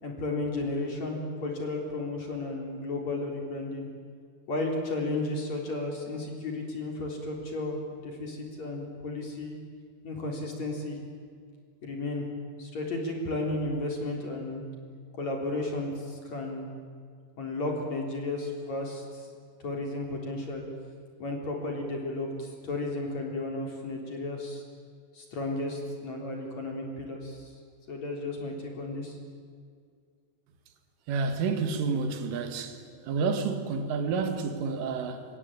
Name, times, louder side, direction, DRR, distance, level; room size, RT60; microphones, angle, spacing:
voice 1, 0.0-3.9 4.5-9.6 10.0-11.0 11.8-12.3 12.6-14.6 15.2-16.7 17.4-19.3 19.6-20.6 21.2-24.6 25.1-27.5 27.9-29.2, left 2 dB, 35° left, 4.5 m, -33 dB
voice 2, 31.1-32.8 33.1-35.2, right 4 dB, 80° right, 4.5 m, -29 dB
26.0 x 25.0 x 9.0 m
omnidirectional pair, 5.7 m